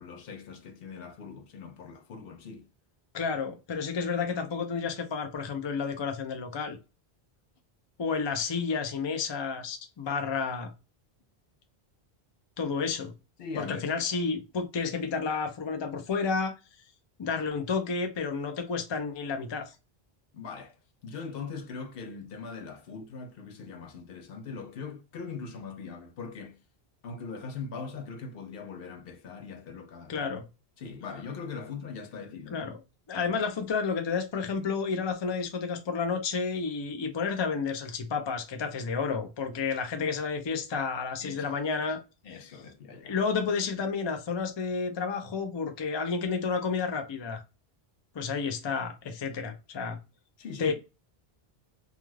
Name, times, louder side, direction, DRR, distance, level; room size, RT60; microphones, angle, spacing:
voice 1, 0.0-2.7 13.4-13.9 20.3-20.8 21.0-26.6 27.0-30.3 30.8-32.6 41.2-41.6 42.2-43.2 50.4-50.7, left 5 dB, 70° left, 0.8 m, -41 dB
voice 2, 3.1-6.8 8.0-10.7 12.6-13.1 13.6-16.5 17.2-19.7 30.1-30.4 32.5-32.8 33.1-42.0 43.0-47.4 48.1-50.0 50.6-50.7, left 5 dB, 40° left, 0.4 m, -31 dB
2.4 x 2.3 x 3.1 m
omnidirectional pair, 1.1 m